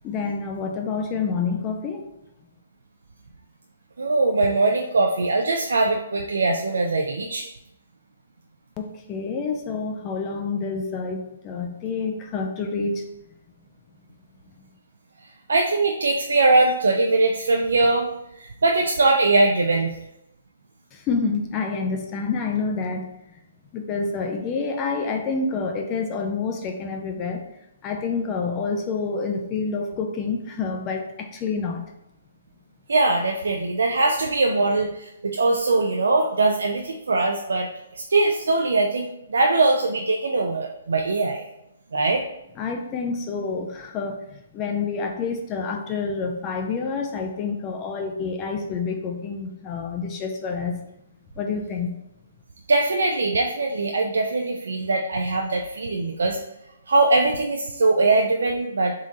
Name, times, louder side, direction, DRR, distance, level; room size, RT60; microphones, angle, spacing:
voice 1, 0.0-2.1 8.8-13.1 20.9-23.4 23.7-27.4 27.8-31.9 42.6-50.8 51.4-52.0, left 4 dB, 25° left, 3 dB, 0.4 m, -28 dB
voice 2, 4.0-7.5 15.5-18.1 18.4-19.9 32.9-41.4 41.9-42.2 52.7-56.4 56.9-58.9, right 3 dB, 80° right, 2 dB, 0.4 m, -21 dB
3.7 x 2.5 x 4.0 m, 0.87 s
hypercardioid pair, 145°, 0 cm